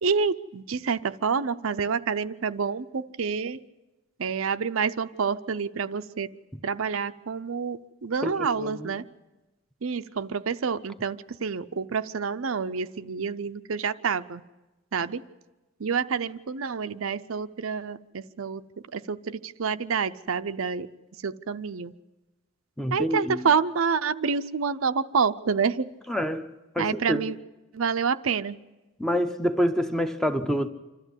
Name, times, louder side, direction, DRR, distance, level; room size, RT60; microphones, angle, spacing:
voice 1, 0.0-3.6 4.2-6.3 6.6-9.0 9.8-14.4 14.9-15.2 15.8-18.6 18.9-20.9 21.2-21.9 22.9-25.9 26.8-27.4 27.7-28.6, right 5 dB, 80° right, 0.6 m, -28 dB
voice 2, 8.2-8.9 22.8-23.4 26.1-26.5 26.7-27.3 29.0-30.7, equal, 5° left, 0.7 m, -27 dB
26.5 x 13.5 x 8.1 m
head